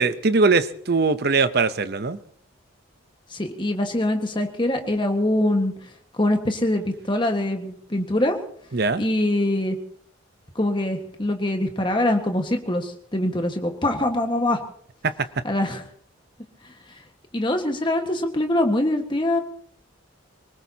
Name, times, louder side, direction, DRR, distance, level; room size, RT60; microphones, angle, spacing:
voice 1, 0.0-2.2 8.7-9.0 15.0-15.3, right 4 dB, 50° right, 13 dB, 0.7 m, -21 dB
voice 2, 3.3-5.7 6.1-8.4 9.0-9.8 10.5-14.6 15.4-15.8 17.3-19.4, left 1 dB, 25° left, 4 dB, 1.5 m, -23 dB
25.0 x 19.0 x 2.8 m, 0.62 s
head